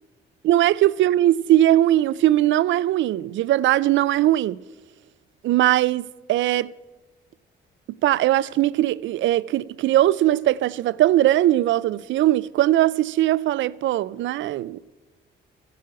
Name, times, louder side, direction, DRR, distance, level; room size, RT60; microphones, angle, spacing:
voice 1, 0.4-4.6 5.4-6.7 8.0-14.8, right 14 dB, 70° right, 0.4 m, -20 dB
14.0 x 7.6 x 8.5 m
cardioid pair, 90°, 20 cm